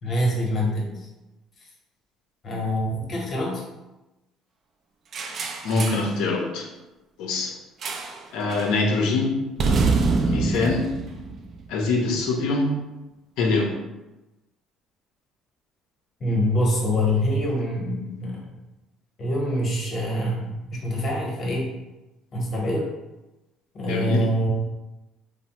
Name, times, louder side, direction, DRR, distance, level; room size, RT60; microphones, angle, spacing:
voice 1, 0.0-1.1 2.4-3.6 16.2-18.4 19.2-21.7 22.3-22.9 23.7-24.5, equal, 45° left, -1 dB, 0.9 m, -25 dB
sound 1, 5.1-6.1 7.8-8.2 8.5-8.8 9.6-11.9, right 4 dB, 50° right, 0.3 m, -25 dB
voice 2, 5.6-6.7 7.2-7.5 8.3-9.4 10.2-10.9 11.7-12.7 13.4-13.7 23.9-24.3, left 3 dB, 80° left, 1 dB, 0.5 m, -24 dB
3.1 x 2.0 x 2.8 m, 1.0 s
cardioid pair, 100°, 0 cm